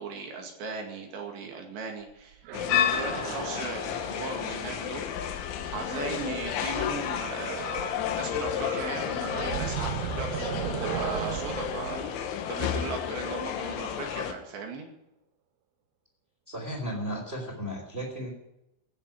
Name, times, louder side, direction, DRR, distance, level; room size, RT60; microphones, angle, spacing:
voice 1, 0.0-2.4 2.7-5.3 5.6-7.6 7.9-12.2 12.5-14.9, right 4 dB, 70° right, 2 dB, 4.4 m, -37 dB
sound 1, 2.1-6.3 7.4-8.1 8.4-13.3, right 11 dB, 85° right, 3.3 m, -37 dB
sound 2, 2.5-14.3, left 9 dB, 80° left, 3.6 m, -31 dB
voice 2, 16.5-18.3, equal, 15° right, -3 dB, 3.0 m, -34 dB
16.0 x 7.4 x 9.1 m, 0.86 s
omnidirectional pair, 5.4 m